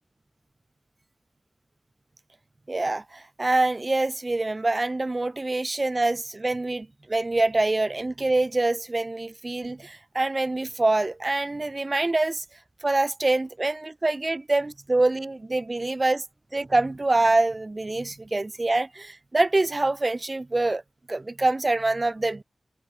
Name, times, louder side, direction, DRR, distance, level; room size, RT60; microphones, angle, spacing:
voice 1, 2.7-12.4 12.8-16.2 16.5-20.8 21.1-22.4, right 2 dB, 35° right, 3.1 m, -25 dB
wide cardioid pair, 80°, 0 cm